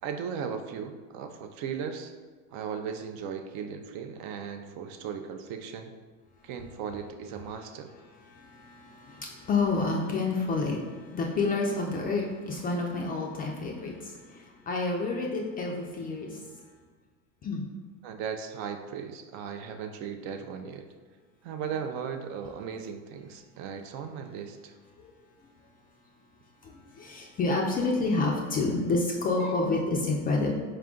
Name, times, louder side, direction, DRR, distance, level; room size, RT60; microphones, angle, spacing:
voice 1, 0.0-2.1 2.5-5.9 6.4-7.9 18.0-20.9 21.4-24.7, right 7 dB, 45° right, 6 dB, 0.4 m, -37 dB
voice 2, 8.3-16.4 17.4-17.7 25.0-25.1 26.6-30.5, left 3 dB, 20° left, 0 dB, 0.4 m, -29 dB
4.4 x 2.4 x 3.7 m, 1.5 s
hypercardioid pair, 100°, 41 cm